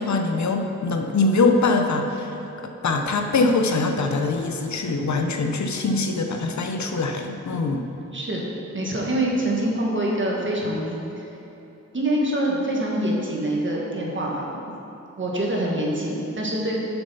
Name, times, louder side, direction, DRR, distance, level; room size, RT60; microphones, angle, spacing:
voice 1, 0.0-2.4 2.8-7.9, left 3 dB, 70° left, 4 dB, 0.7 m, -23 dB
voice 2, 8.1-8.5 8.7-11.2 11.9-14.5 15.2-16.8, right 1 dB, 40° right, -3 dB, 1.6 m, -25 dB
7.1 x 6.8 x 5.6 m, 3.0 s
wide cardioid pair, 85°, 30 cm